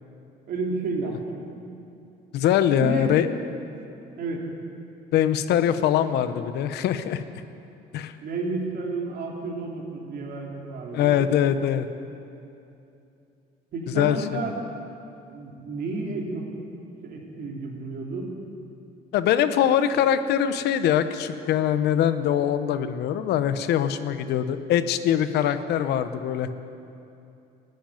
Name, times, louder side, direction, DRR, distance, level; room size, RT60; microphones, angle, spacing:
voice 1, 0.5-1.4 2.8-3.1 4.2-4.5 8.2-11.3 13.7-14.5 15.3-16.5 17.0-18.4 19.9-20.0, right 3 dB, 60° right, -1 dB, 3.1 m, -31 dB
voice 2, 2.3-3.3 5.1-7.2 7.9-8.1 10.9-11.9 13.9-14.2 19.1-26.5, left 10 dB, 75° left, 11 dB, 0.9 m, -23 dB
15.0 x 10.0 x 9.2 m, 2.7 s
cardioid pair, 110°, 17 cm